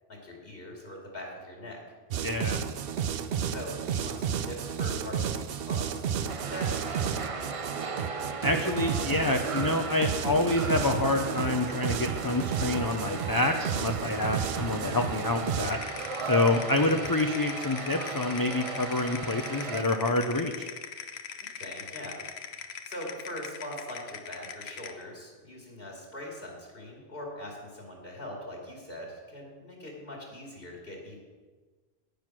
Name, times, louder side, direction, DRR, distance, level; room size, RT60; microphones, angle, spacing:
voice 1, 0.1-1.8 3.5-7.6 21.4-22.2 22.8-31.2, left 1 dB, 65° left, -1 dB, 2.7 m, -42 dB
sound 1, 2.1-15.7, right 8 dB, 70° right, 0.8 m, -32 dB
voice 2, 2.2-2.6 8.4-15.8 16.2-20.7, left 2 dB, 25° left, 4 dB, 0.6 m, -27 dB
sound 2, 6.3-19.8, right 5 dB, 40° right, 0.6 m, -37 dB
sound 3, 15.6-25.0, left 7 dB, 90° left, 1.1 m, -41 dB
10.0 x 9.3 x 6.1 m, 1.4 s
omnidirectional pair, 1.1 m